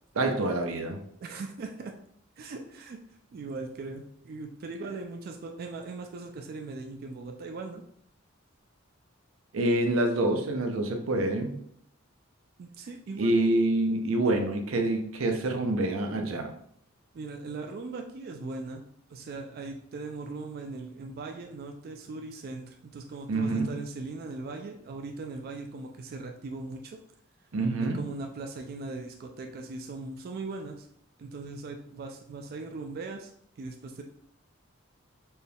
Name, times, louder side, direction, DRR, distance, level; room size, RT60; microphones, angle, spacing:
voice 1, 0.2-1.0 9.5-11.6 13.2-16.5 23.3-23.7 27.5-28.0, right 2 dB, 90° right, 4 dB, 0.6 m, -26 dB
voice 2, 1.2-1.9 2.4-3.0 3.3-7.8 12.6-13.3 17.1-18.8 19.1-27.0 27.8-30.9 31.2-33.3 33.6-34.0, right 3 dB, 50° right, 3 dB, 0.3 m, -39 dB
4.2 x 2.3 x 3.4 m, 0.69 s
head